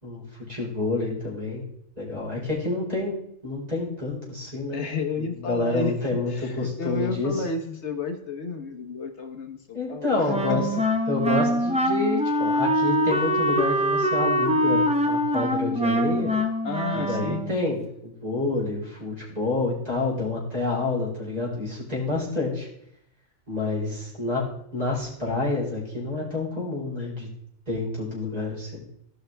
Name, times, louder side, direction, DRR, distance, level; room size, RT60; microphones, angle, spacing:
voice 1, 0.0-1.6 2.0-3.2 3.4-4.9 5.2-7.4 9.7-10.7 11.1-16.3 16.9-22.7 23.5-24.4 24.7-27.3 27.7-28.8, left 3 dB, 30° right, -5 dB, 4.1 m, -28 dB
voice 2, 4.7-5.9 6.3-10.6 16.6-17.6, left 4 dB, 65° left, 5 dB, 1.2 m, -32 dB
Wind instrument woodwind instrument, 10.3-17.6, equal, 5° right, 0.8 m, -24 dB
16.0 x 5.8 x 3.3 m, 0.75 s
omnidirectional pair, 1.3 m